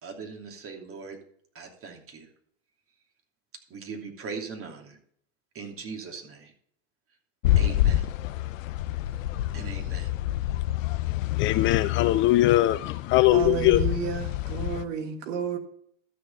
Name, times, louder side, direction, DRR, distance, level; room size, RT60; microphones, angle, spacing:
voice 1, 0.0-1.2 1.5-2.3 3.7-5.0 5.5-6.5 7.6-8.1 9.5-10.1, right 5 dB, 35° right, 3.0 m, -39 dB
sound 1, 7.4-14.9, left 13 dB, 70° left, 0.7 m, -28 dB
voice 2, 11.2-13.8, left 15 dB, 30° left, 0.4 m, -21 dB
voice 3, 13.3-15.6, right 7 dB, 65° right, 1.8 m, -31 dB
12.5 x 6.7 x 5.5 m
hypercardioid pair, 95°, 40 cm